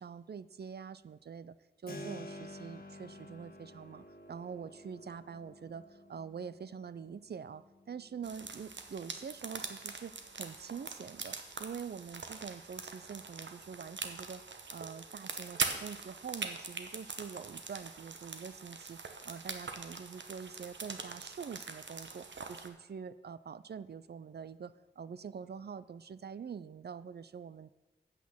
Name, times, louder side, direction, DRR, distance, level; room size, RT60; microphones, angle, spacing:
voice 1, 0.0-1.5 1.8-14.4 14.7-19.0 19.3-27.7, right 6 dB, 60° right, 16 dB, 0.4 m, -45 dB
Keyboard (musical), 1.9-12.5, left 1 dB, 50° left, 1.4 m, -52 dB
sound 1, 8.2-22.7, right 4 dB, 75° right, 0.9 m, -42 dB
8.2 x 6.3 x 7.1 m, 1.1 s
wide cardioid pair, 60°, 19 cm